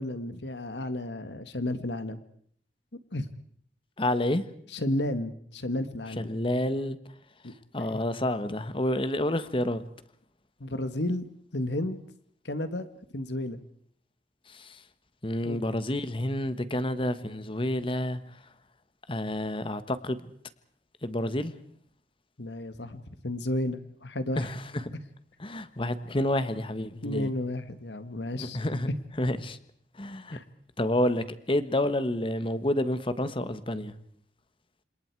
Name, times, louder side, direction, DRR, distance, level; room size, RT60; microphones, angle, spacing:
voice 1, 0.0-2.2 3.1-3.3 4.7-6.3 7.4-7.5 7.8-8.0 10.6-11.3 11.5-12.0 12.4-12.9 13.1-13.6 15.4-15.6 22.4-24.5 27.0-28.6 28.9-29.0 30.3-30.4, left 1 dB, 80° left, 1.7 m, -32 dB
voice 2, 4.0-4.4 6.2-7.0 7.7-9.8 14.5-14.8 15.2-18.4 19.1-20.2 21.0-21.5 24.4-25.0 25.4-27.3 28.4-28.9 29.2-29.6 29.9-30.4 30.8-34.0, left 1 dB, 30° left, 1.4 m, -29 dB
29.5 x 27.5 x 4.7 m
head